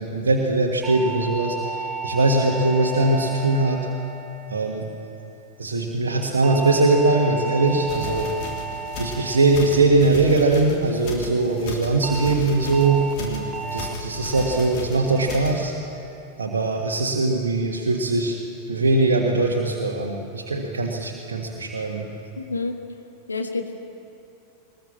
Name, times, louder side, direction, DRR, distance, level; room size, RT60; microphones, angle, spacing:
voice 1, 0.0-3.9 4.5-4.8 5.6-8.3 9.0-13.4 13.7-15.7 16.4-18.4 18.7-22.1, right 2 dB, 70° right, 0 dB, 1.6 m, -21 dB
sound 1, 0.8-5.3 6.4-10.9 12.0-12.3 12.7-13.1 13.5-13.9 14.3-14.7 15.1-15.5 15.9-16.3, right 4 dB, 25° right, 2.2 m, -34 dB
sound 2, 7.7-15.7, left 3 dB, 45° left, 3.2 m, -36 dB
voice 2, 22.4-22.8 23.3-23.7, left 3 dB, 80° left, 5 dB, 1.6 m, -28 dB
21.5 x 20.0 x 7.3 m, 2.8 s
figure-of-eight pair, 90°, 0 cm